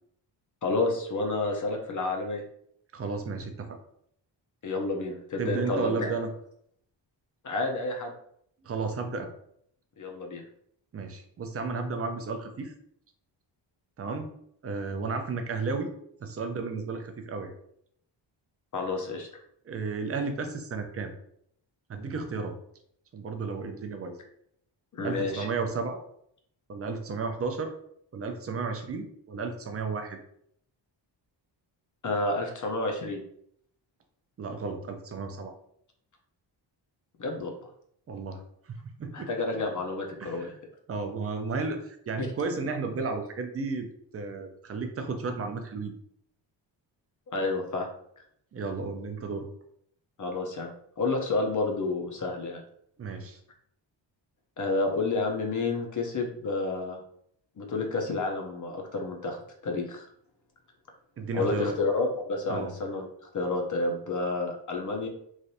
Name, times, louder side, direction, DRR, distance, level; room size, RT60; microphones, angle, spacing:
voice 1, 0.6-2.4 4.6-6.1 7.4-8.1 10.0-10.4 18.7-19.3 24.9-25.5 32.0-33.2 37.2-37.5 39.1-40.5 42.2-42.3 47.3-47.9 50.2-50.7 51.0-52.6 54.6-57.0 57.6-60.0 61.3-63.1 63.3-65.1, left 3 dB, 40° left, 2 dB, 0.6 m, -30 dB
voice 2, 2.9-3.8 5.4-6.3 8.6-9.3 10.9-12.7 14.0-14.3 14.6-15.9 16.2-17.5 19.7-21.1 21.9-22.6 23.1-24.2 25.0-26.0 26.7-27.7 28.1-30.2 34.4-35.5 38.1-38.4 38.7-39.3 40.2-40.5 40.9-43.9 44.1-46.0 48.5-49.5 53.0-53.4 61.2-61.8 62.5-62.7, right 4 dB, 35° right, 6 dB, 0.5 m, -33 dB
3.2 x 2.5 x 2.7 m, 0.69 s
cardioid pair, 105°, 46 cm